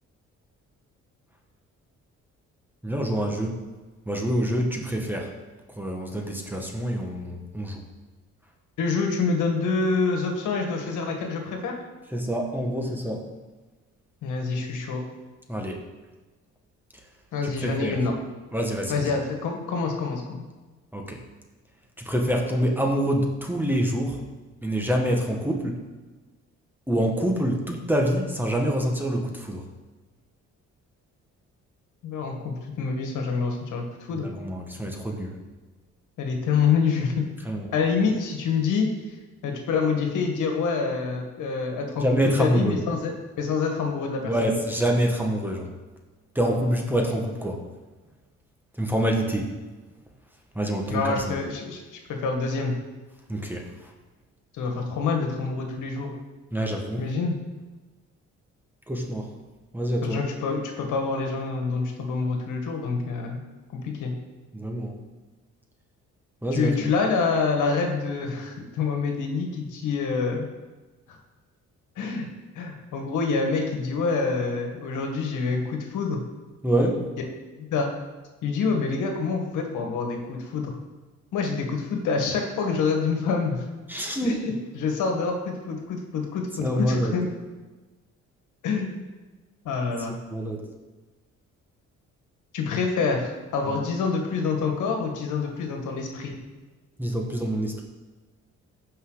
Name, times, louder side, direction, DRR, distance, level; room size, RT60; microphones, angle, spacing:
voice 1, 2.8-3.6 4.1-5.3 5.8-7.8 12.1-13.2 15.5-15.8 17.6-18.0 18.5-19.1 20.9-21.2 22.0-24.2 24.6-25.8 26.9-29.6 34.1-35.4 37.5-37.7 42.0-42.8 44.3-45.7 46.4-47.7 48.8-49.5 50.6-51.4 53.3-53.6 56.5-57.1 58.9-59.3 59.7-60.2 64.5-64.9 66.4-66.9 76.6-77.1 83.9-84.4 86.6-87.2 90.3-90.6 97.0-97.8, equal, 5° right, 1 dB, 1.7 m, -26 dB
voice 2, 8.8-11.7 14.2-15.0 17.3-18.1 18.9-20.4 32.0-34.3 36.2-37.2 37.7-38.9 39.4-42.0 42.4-44.5 50.9-51.8 52.1-52.8 54.6-56.1 57.0-57.4 60.0-63.4 63.7-64.1 66.5-70.5 72.0-72.3 72.6-76.2 77.6-77.9 78.4-80.8 81.3-83.7 84.2-87.3 88.6-89.0 89.7-90.2 92.5-96.4, left 4 dB, 80° left, 2 dB, 1.7 m, -26 dB
15.0 x 5.6 x 4.0 m, 1.2 s
cardioid pair, 90°, 30 cm